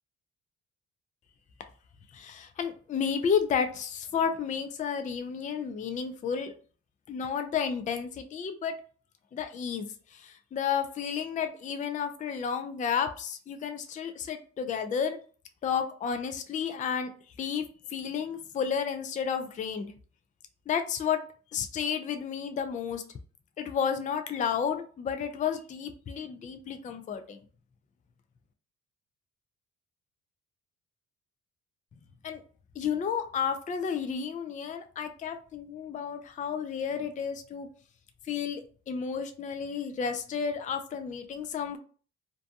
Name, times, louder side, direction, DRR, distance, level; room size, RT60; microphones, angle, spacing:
voice 1, 2.1-6.5 7.1-8.8 9.3-15.2 15.6-17.1 17.4-17.6 17.9-19.9 20.7-21.2 21.5-23.0 23.6-27.4 32.2-32.4 32.8-37.7 38.3-41.8, left 7 dB, 25° left, 7 dB, 0.3 m, -32 dB
2.6 x 2.2 x 2.6 m, 0.41 s
cardioid pair, 90°, 30 cm